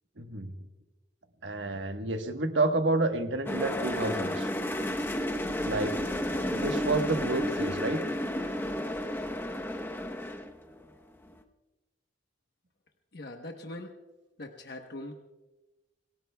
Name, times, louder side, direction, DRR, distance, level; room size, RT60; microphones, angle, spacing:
voice 1, 0.2-0.5 1.4-4.5 5.6-6.0 6.5-8.0, right 2 dB, 75° right, 6 dB, 1.3 m, -29 dB
sound 1, 3.5-10.9 11.2-11.3, left 1 dB, 10° left, 0.9 m, -32 dB
voice 2, 13.1-13.9 14.4-15.1, left 1 dB, 60° left, 3 dB, 1.1 m, -41 dB
28.5 x 18.5 x 2.3 m, 1.1 s
head